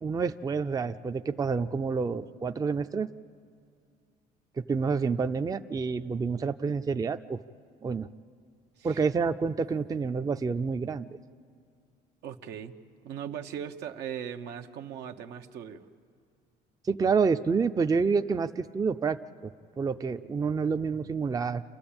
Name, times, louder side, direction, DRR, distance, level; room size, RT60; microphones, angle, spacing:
voice 1, 0.0-3.1 4.6-7.4 7.8-8.1 8.8-11.2 16.9-21.6, right 5 dB, 20° right, 9 dB, 0.5 m, -28 dB
voice 2, 12.2-12.7 13.0-15.8, right 9 dB, 80° right, 5 dB, 1.0 m, -39 dB
28.5 x 13.0 x 8.8 m, 2.4 s
cardioid pair, 110°, 17 cm